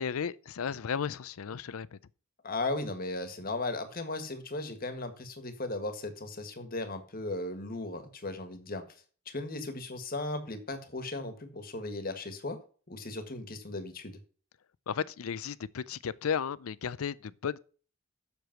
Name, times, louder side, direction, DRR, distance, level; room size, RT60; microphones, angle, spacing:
voice 1, 0.0-2.0 14.9-17.6, left 7 dB, 85° left, 0.5 m, -34 dB
voice 2, 2.4-8.8 9.2-12.6 12.9-14.2, left 2 dB, 45° left, 1.6 m, -36 dB
7.9 x 6.8 x 5.9 m
head